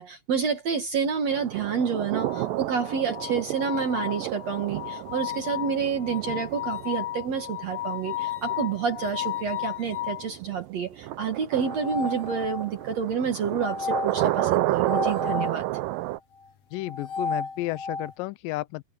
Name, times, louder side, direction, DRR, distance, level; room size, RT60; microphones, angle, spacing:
voice 1, 0.0-15.6, right 6 dB, 55° right, 2.6 m, -29 dB
sound 1, 1.3-16.2, right 16 dB, 80° right, 2.4 m, -32 dB
sound 2, 2.2-10.3 11.6-12.8 13.6-15.6 16.8-18.1, left 7 dB, 55° left, 2.3 m, -33 dB
voice 2, 16.7-18.8, left 18 dB, 80° left, 2.3 m, -32 dB
omnidirectional pair, 4.0 m